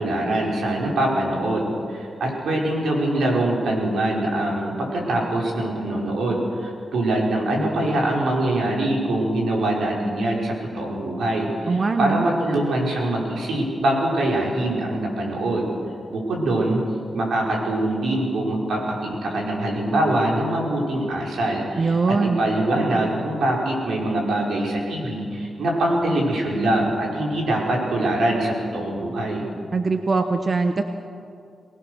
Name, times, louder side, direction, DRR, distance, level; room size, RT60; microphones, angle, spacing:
voice 1, 0.0-15.7 16.1-16.8 17.1-29.5, right 1 dB, 85° right, -2 dB, 5.4 m, -23 dB
voice 2, 11.7-12.3 21.8-22.4 29.7-30.8, right 4 dB, 40° right, 6 dB, 0.9 m, -21 dB
24.0 x 19.5 x 6.5 m, 2.4 s
wide cardioid pair, 140°, 0 cm